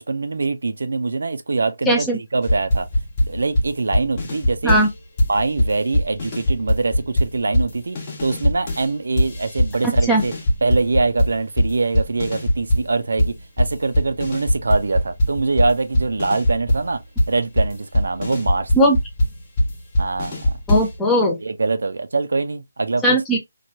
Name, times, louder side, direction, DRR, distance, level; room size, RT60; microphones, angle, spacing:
voice 1, 0.0-2.9 3.3-4.8 5.3-10.3 10.6-17.0 17.3-18.7 20.0-20.5 21.4-23.2, right 3 dB, 70° right, 0.4 m, -23 dB
voice 2, 1.9-2.2 4.6-4.9 10.0-10.2 18.7-19.0 20.7-21.4 23.0-23.4, equal, 5° left, 0.4 m, -17 dB
sound 1, 2.4-4.9 5.2-8.9 9.2-12.9 13.2-21.0, left 1 dB, 25° left, 0.8 m, -21 dB
3.0 x 2.2 x 2.6 m
hypercardioid pair, 170°, 0 cm